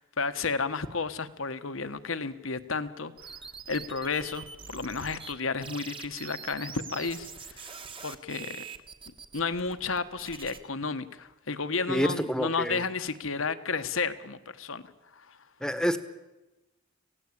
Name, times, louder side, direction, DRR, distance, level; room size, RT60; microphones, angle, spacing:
voice 1, 0.0-3.3 3.7-7.7 8.0-8.6 9.3-14.8 15.1-15.4, left 4 dB, 75° left, 11 dB, 1.4 m, -32 dB
sound 1, 3.2-5.3 5.6-10.6, right 6 dB, 25° right, 1.4 m, -44 dB
voice 2, 11.9-12.8 15.6-16.0, equal, 5° left, 12 dB, 1.2 m, -28 dB
26.5 x 17.0 x 8.6 m, 1.1 s
head